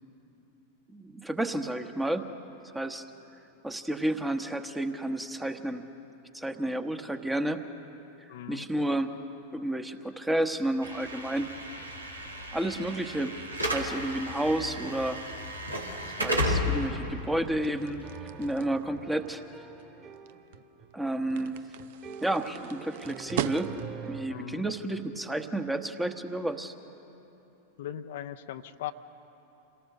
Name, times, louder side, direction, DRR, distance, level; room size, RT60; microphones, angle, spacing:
voice 1, 0.9-2.2 2.7-3.1 3.6-5.9 6.3-7.6 8.5-9.1 9.5-11.5 12.5-15.2 16.2-18.1 18.4-19.4 20.9-21.6 22.2-23.7 24.1-26.7, right 1 dB, 5° right, 8 dB, 1.2 m, -31 dB
voice 2, 8.3-8.7 24.3-24.7 27.8-28.9, left 11 dB, 55° left, 9 dB, 0.6 m, -39 dB
Slam / Alarm, 10.8-18.9, left 1 dB, 85° right, 2.4 m, -33 dB
sound 1, 17.3-24.1, right 12 dB, 50° right, 0.7 m, -41 dB
sound 2, 17.5-24.6, right 7 dB, 30° right, 2.5 m, -45 dB
27.0 x 18.5 x 6.7 m, 3.0 s
figure-of-eight pair, 90°, 0 cm